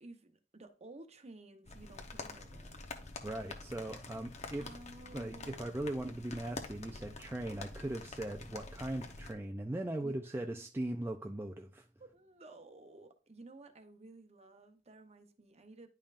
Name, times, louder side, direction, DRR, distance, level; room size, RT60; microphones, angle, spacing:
voice 1, 0.0-2.9 4.5-5.6 10.0-10.6 12.0-15.9, right 2 dB, 35° right, 0.9 m, -54 dB
sound 1, 1.6-9.3, left 3 dB, 40° left, 0.9 m, -47 dB
voice 2, 3.2-4.8 5.1-11.9, right 1 dB, 15° right, 0.4 m, -39 dB
10.0 x 5.3 x 2.5 m
head